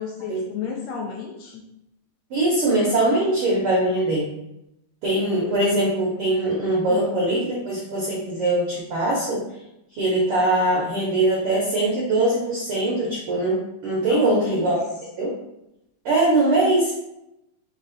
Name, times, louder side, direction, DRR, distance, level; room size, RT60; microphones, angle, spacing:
voice 1, 0.0-1.6 5.4-5.5 6.9-7.2 14.1-14.8, left 6 dB, 80° left, 0 dB, 1.8 m, -31 dB
voice 2, 2.3-4.3 5.0-9.4 10.0-14.8 15.2-15.3 16.0-17.0, right 2 dB, 75° right, -5 dB, 1.2 m, -22 dB
5.3 x 2.5 x 3.9 m, 0.87 s
omnidirectional pair, 3.8 m